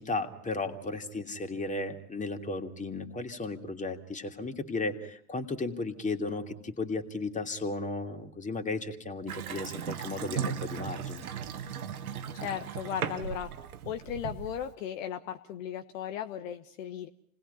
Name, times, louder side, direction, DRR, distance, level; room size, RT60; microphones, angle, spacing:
voice 1, 0.0-11.2, left 3 dB, 15° left, 5 dB, 2.8 m, -35 dB
Water tap faucet / Sink (filling or washing) / Bathtub (filling or washing), 9.3-14.7, right 8 dB, 75° right, 1.6 m, -37 dB
voice 2, 12.3-13.5 13.8-17.1, left 9 dB, 60° left, 7 dB, 1.4 m, -36 dB
29.5 x 20.0 x 5.7 m, 0.69 s
figure-of-eight pair, 75°, 44 cm